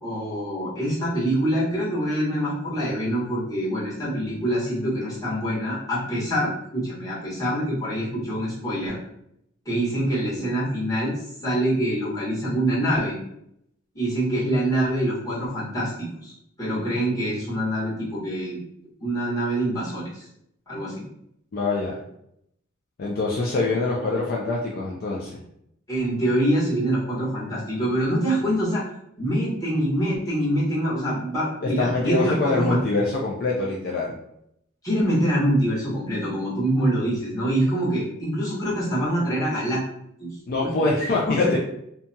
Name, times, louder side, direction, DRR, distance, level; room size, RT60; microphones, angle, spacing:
voice 1, 0.0-9.0 9.6-11.1 11.4-13.2 13.9-18.6 19.0-20.3 20.7-20.9 23.6-23.7 25.9-28.8 29.2-32.8 34.8-39.8 40.2-40.3 40.6-40.9 41.3-41.6, right 1 dB, 15° left, -10 dB, 1.3 m, -25 dB
voice 2, 21.5-22.0 23.0-25.4 31.6-34.1 40.5-41.6, left 3 dB, 50° left, -3 dB, 0.4 m, -24 dB
2.8 x 2.2 x 2.7 m, 0.76 s
head